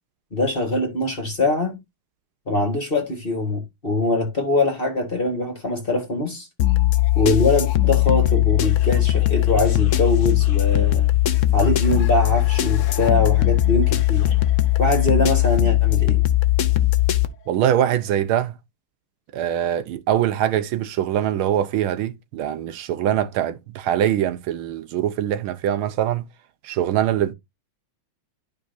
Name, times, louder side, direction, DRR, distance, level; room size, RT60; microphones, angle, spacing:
voice 1, 0.3-1.8 2.5-6.5 7.1-11.1 11.5-14.3 14.8-16.2, left 2 dB, 30° left, 1.5 m, -23 dB
sound 1, 6.6-17.3, left 15 dB, 80° left, 0.6 m, -19 dB
voice 2, 17.5-18.5 19.3-26.2 26.6-27.3, right 11 dB, 80° right, 1.6 m, -23 dB
11.5 x 5.3 x 2.6 m
omnidirectional pair, 2.3 m